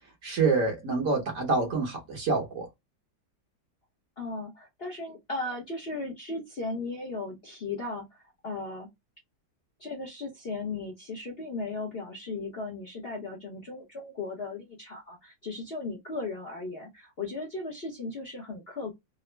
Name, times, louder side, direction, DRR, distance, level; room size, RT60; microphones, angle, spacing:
voice 1, 0.2-2.7, right 4 dB, 50° right, 1.2 m, -27 dB
voice 2, 4.2-8.9 9.8-18.9, left 3 dB, 45° left, 0.8 m, -36 dB
3.7 x 2.0 x 3.2 m
omnidirectional pair, 2.0 m